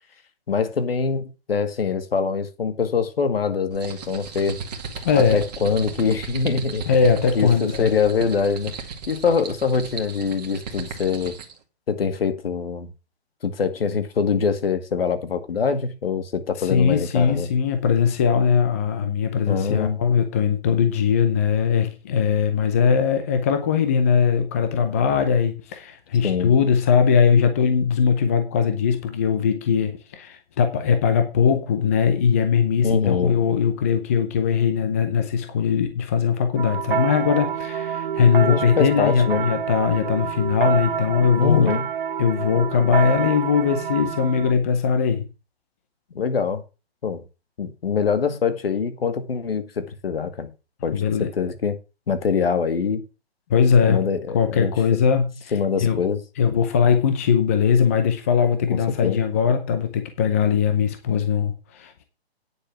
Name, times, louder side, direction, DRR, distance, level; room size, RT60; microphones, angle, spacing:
voice 1, 0.5-4.6 5.1-6.8 7.3-8.7 9.1-11.3 11.9-12.9 13.4-17.5 19.5-20.0 26.2-26.5 32.8-33.4 38.4-39.5 41.4-41.9 46.1-46.6 47.0-47.2 47.6-50.5 50.8-51.8 52.1-53.0 53.9-54.7 55.5-56.2 58.7-59.2, left 6 dB, 65° left, 2.1 m, -24 dB
sound 1, 3.7-11.6, right 5 dB, 40° right, 2.1 m, -35 dB
voice 2, 5.0-5.4 6.9-7.9 16.6-41.7 42.2-45.3 50.9-51.3 53.5-54.0 54.3-55.3 55.8-56.0 56.4-62.0, left 6 dB, 15° left, 0.6 m, -20 dB
sound 2, 36.6-44.5, right 8 dB, 55° right, 0.5 m, -28 dB
9.5 x 7.3 x 5.9 m
hypercardioid pair, 160°, 32 cm